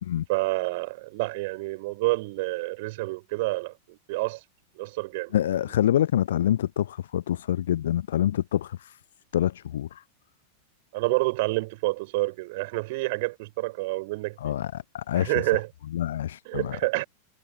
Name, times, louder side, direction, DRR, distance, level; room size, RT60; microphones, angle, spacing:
voice 1, 0.3-4.4 4.8-5.3 10.9-14.6 15.2-15.7 16.5-17.1, right 23 dB, 50° right, 4.0 m, -28 dB
voice 2, 5.3-9.0 9.3-10.0 14.4-15.4 15.9-16.8, left 11 dB, 60° left, 0.7 m, -26 dB
figure-of-eight pair, 90°, 0 cm